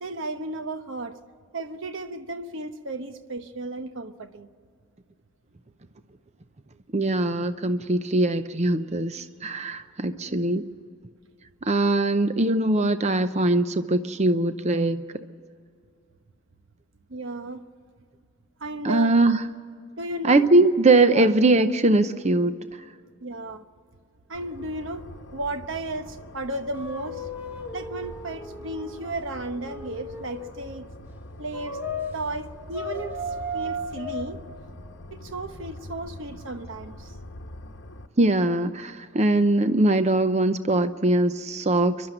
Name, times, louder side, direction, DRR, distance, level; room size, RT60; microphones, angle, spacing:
voice 1, 0.0-1.2 1.5-4.5 17.1-17.6 18.6-19.1 20.0-20.5 21.1-21.3 23.2-23.6 24.3-27.3 27.7-30.8 31.4-31.8 32.1-33.2 33.5-34.4 35.1-37.2, right 2 dB, 60° right, 1.0 m, -34 dB
voice 2, 6.9-10.7 11.6-15.0 18.8-19.5 20.2-22.5 38.2-42.1, right 2 dB, 30° right, 0.6 m, -21 dB
sound 1, 24.3-38.1, left 1 dB, 55° left, 1.1 m, -44 dB
sound 2, 26.7-30.6 31.5-32.2 32.7-34.2, left 1 dB, 10° right, 2.1 m, -35 dB
29.5 x 12.0 x 7.9 m
head